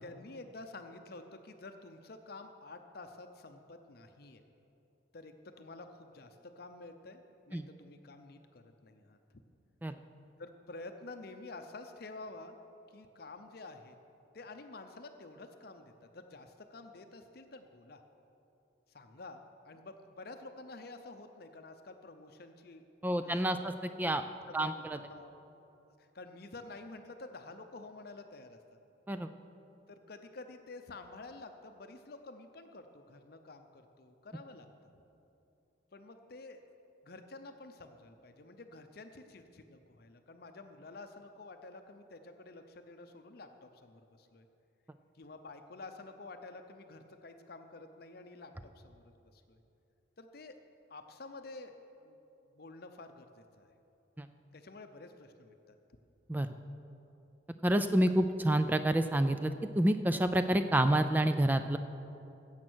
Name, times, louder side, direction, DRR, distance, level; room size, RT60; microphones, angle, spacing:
voice 1, 0.0-4.4 5.1-9.2 10.4-12.6 12.9-14.0 14.3-18.0 18.9-23.7 24.5-25.4 26.0-28.6 29.9-34.7 35.9-36.6 37.0-44.5 45.1-49.6 50.2-50.6 50.9-51.7 52.0-52.2 52.5-53.8 54.5-55.8, left 2 dB, 50° left, 7 dB, 0.6 m, -50 dB
voice 2, 23.0-24.2 24.5-25.0 29.1-29.3 54.2-54.3 56.3-56.5 57.6-61.8, right 1 dB, 10° right, 9 dB, 0.3 m, -28 dB
15.5 x 7.3 x 6.2 m, 2.9 s
head